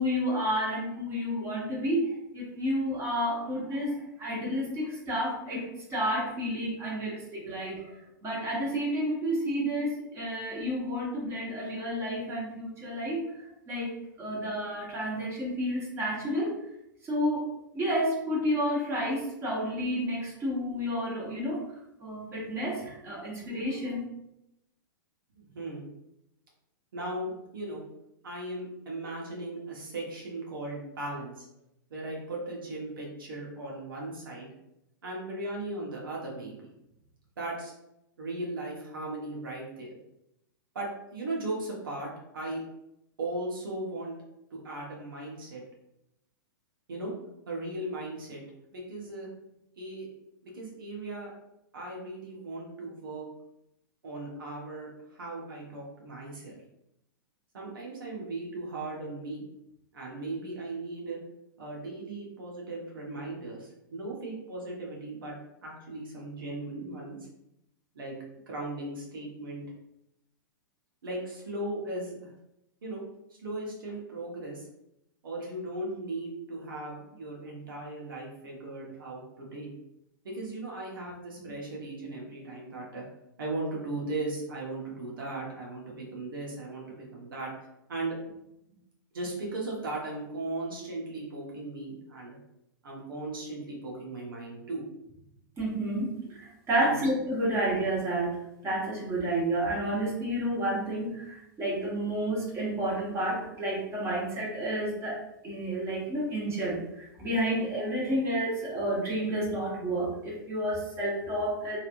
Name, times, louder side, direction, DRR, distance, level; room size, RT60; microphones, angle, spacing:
voice 1, 0.0-7.9 8.2-13.4 13.7-16.5 17.0-17.5 17.7-21.6 22.0-24.0 95.6-105.2 105.4-111.8, equal, 25° right, -4 dB, 1.1 m, -30 dB
voice 2, 25.4-25.9 26.9-27.8 28.2-31.5 31.9-34.5 35.0-36.7 37.4-37.7 38.2-40.0 40.7-42.6 43.2-44.1 44.5-45.6 46.9-47.1 47.5-48.4 48.7-49.3 49.8-50.1 50.4-51.3 51.7-53.3 54.0-56.6 57.5-59.4 59.9-61.2 61.6-65.3 65.6-67.2 67.9-68.1 68.5-69.6 71.0-72.3 72.8-73.0 73.4-74.7 75.2-79.7 80.2-83.0 83.4-87.5 87.9-88.2 89.1-92.4 92.8-94.8 96.8-97.0, right 2 dB, 75° right, -3 dB, 1.2 m, -37 dB
3.1 x 3.1 x 2.6 m, 0.84 s
hypercardioid pair, 115°, 11 cm